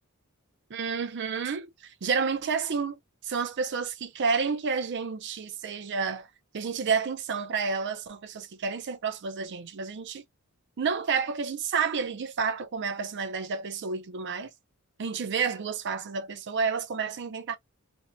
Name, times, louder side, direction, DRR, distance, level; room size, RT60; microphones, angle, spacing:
voice 1, 0.7-6.3 6.5-10.2 10.8-14.5 15.0-17.6, right 5 dB, 55° right, 0.5 m, -30 dB
2.6 x 2.1 x 2.5 m
head